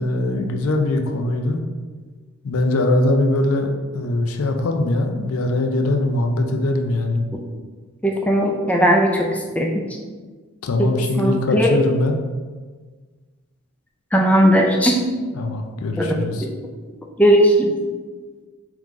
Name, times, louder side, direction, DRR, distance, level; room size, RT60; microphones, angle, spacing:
voice 1, 0.0-1.6 2.4-7.3 10.6-12.2 15.3-16.5, left 2 dB, 75° left, 4 dB, 0.5 m, -21 dB
voice 2, 8.0-9.3 9.6-9.8 10.8-10.9 11.2-11.8 14.1-15.0 16.0-16.1 17.2-17.6, equal, 5° left, -1 dB, 0.3 m, -17 dB
3.7 x 3.1 x 3.6 m, 1.4 s
head